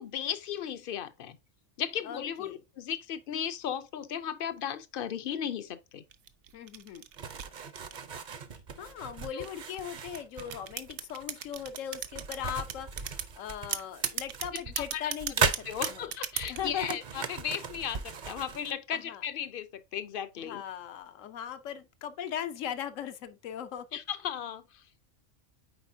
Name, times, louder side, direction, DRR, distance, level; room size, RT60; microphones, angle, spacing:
voice 1, 0.0-1.4 1.8-6.0 9.3-9.4 14.5-15.1 15.7-20.6 23.9-24.8, left 9 dB, 60° left, 0.6 m, -36 dB
voice 2, 2.0-2.6 6.5-7.0 8.8-15.5 15.8-16.1 16.5-17.0 18.9-19.2 20.4-23.9, left 9 dB, 85° left, 1.1 m, -39 dB
sound 1, 6.1-8.6 9.3-12.4 12.7-13.3 13.7-16.7, right 10 dB, 70° right, 0.9 m, -36 dB
sound 2, 7.2-18.7, right 5 dB, 45° right, 0.7 m, -37 dB
8.9 x 4.2 x 2.7 m
omnidirectional pair, 1.3 m